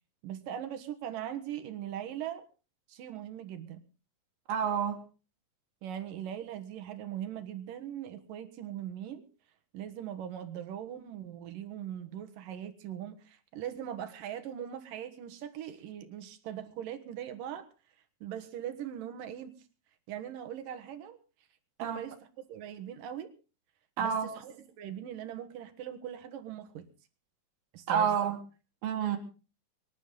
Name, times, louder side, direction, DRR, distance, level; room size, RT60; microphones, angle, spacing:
voice 1, 0.2-2.4 2.9-3.8 5.8-9.2 9.7-17.7 18.2-19.5 20.1-21.2 21.8-22.1 22.5-23.3 24.0-26.8 27.7-28.2, right 10 dB, 70° right, 7 dB, 2.9 m, -40 dB
voice 2, 4.5-5.0 21.8-22.0 24.0-24.3 27.9-28.4 28.8-29.2, right 7 dB, 85° right, 1 dB, 3.5 m, -29 dB
25.0 x 11.5 x 3.8 m, 0.34 s
omnidirectional pair, 4.2 m